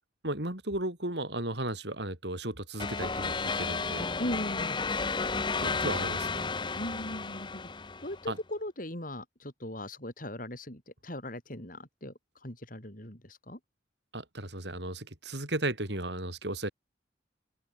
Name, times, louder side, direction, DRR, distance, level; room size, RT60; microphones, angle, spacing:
voice 1, 0.2-4.1 5.6-6.5 8.3-8.4 14.1-16.7, right 1 dB, 65° right, 6.5 m, -35 dB
sound 1, 2.8-8.3, left 4 dB, 25° left, 0.9 m, -32 dB
voice 2, 4.2-4.8 6.8-7.6 8.0-13.6, left 1 dB, 45° left, 6.8 m, -39 dB
open air
head